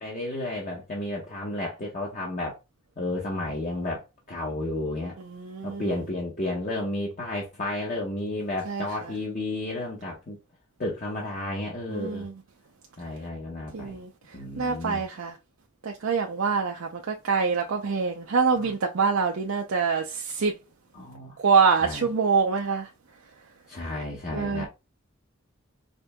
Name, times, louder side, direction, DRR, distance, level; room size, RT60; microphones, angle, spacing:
voice 1, 0.0-2.6 3.0-5.2 5.6-10.4 10.8-12.3 13.0-14.0 14.3-15.1 18.6-18.7 20.9-21.4 21.8-22.1 23.7-24.7, left 1 dB, 35° left, 0.9 m, -32 dB
voice 2, 5.4-5.9 8.7-8.8 11.9-12.3 13.7-14.1 14.6-15.3 15.8-20.5 21.4-22.9 24.3-24.7, right 5 dB, 75° right, 0.5 m, -25 dB
5.1 x 2.6 x 2.2 m
head